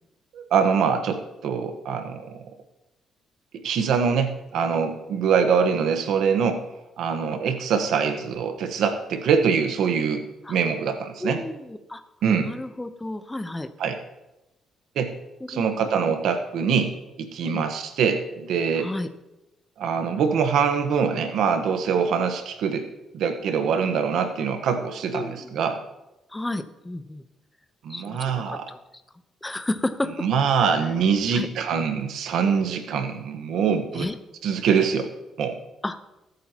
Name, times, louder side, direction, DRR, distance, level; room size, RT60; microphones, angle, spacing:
voice 1, 0.3-2.4 3.5-6.6 7.0-10.2 10.5-11.4 12.2-12.5 13.8-14.0 14.9-15.1 15.5-18.9 19.8-22.9 23.1-25.8 27.8-28.7 30.0-34.1 34.4-35.1 35.4-35.6, right 6 dB, 80° right, 6 dB, 1.3 m, -24 dB
voice 2, 11.2-12.0 12.4-13.7 15.5-15.6 16.0-16.2 17.4-17.6 18.8-19.1 25.1-25.6 26.3-27.2 27.9-28.8 29.4-30.1 31.3-31.5 33.9-34.1 35.8-36.0, left 1 dB, 15° left, 9 dB, 0.9 m, -31 dB
22.0 x 8.5 x 3.0 m, 0.98 s
cardioid pair, 90°, 0 cm